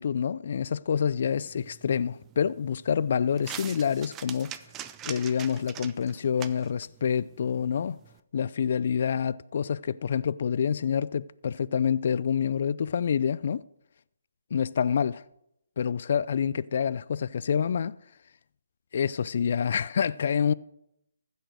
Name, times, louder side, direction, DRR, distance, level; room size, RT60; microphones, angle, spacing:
voice 1, 0.0-4.5 5.1-8.0 8.3-13.6 14.5-15.2 15.8-18.0 18.9-20.5, left 7 dB, 50° left, 0.3 m, -27 dB
sound 1, 1.3-8.2, right 10 dB, 15° right, 0.6 m, -44 dB
15.0 x 6.5 x 6.5 m
figure-of-eight pair, 145°, 0 cm